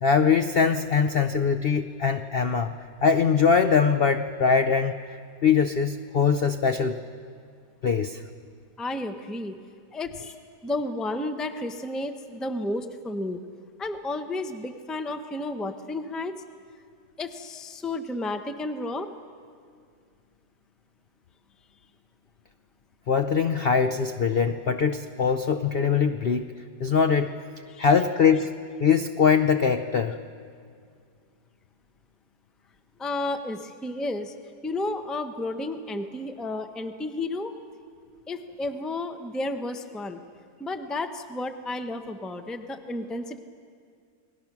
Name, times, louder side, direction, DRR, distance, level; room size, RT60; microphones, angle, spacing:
voice 1, 0.0-2.7 3.0-7.0 7.8-8.2 23.1-26.5 26.8-27.3 27.8-28.5 28.8-30.2, left 6 dB, 75° left, 7 dB, 0.5 m, -22 dB
voice 2, 8.8-9.6 9.9-10.3 10.6-13.4 13.8-16.4 17.2-19.1 27.7-27.9 33.0-34.3 34.6-37.6 38.3-40.2 40.6-43.4, left 2 dB, ahead, 7 dB, 0.4 m, -32 dB
29.5 x 20.0 x 6.0 m, 2.2 s
omnidirectional pair, 2.0 m